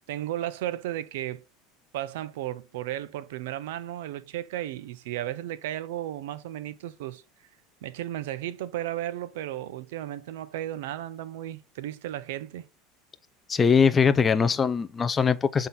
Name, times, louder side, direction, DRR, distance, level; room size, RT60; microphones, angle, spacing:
voice 1, 0.1-1.4 1.9-7.2 7.8-12.7, right 13 dB, 90° right, 0.6 m, -34 dB
voice 2, 13.5-15.7, left 6 dB, 15° left, 0.3 m, -21 dB
7.6 x 3.7 x 4.0 m
cardioid pair, 180°, 0 cm